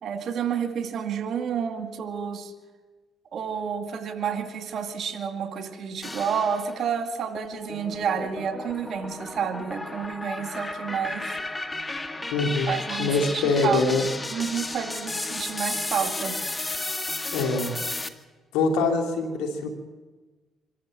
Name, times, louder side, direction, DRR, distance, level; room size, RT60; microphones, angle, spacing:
voice 1, 0.0-2.5 3.3-11.3 12.7-16.4, right 7 dB, 65° right, 6 dB, 2.4 m, -30 dB
sound 1, 6.0-6.9 7.4-18.1, left 2 dB, 20° left, 1.7 m, -33 dB
voice 2, 12.3-12.7 13.0-14.0 17.3-17.7 18.5-19.7, left 3 dB, 90° left, 3 dB, 3.0 m, -24 dB
25.0 x 13.5 x 7.8 m, 1.3 s
supercardioid pair, 70°, 0 cm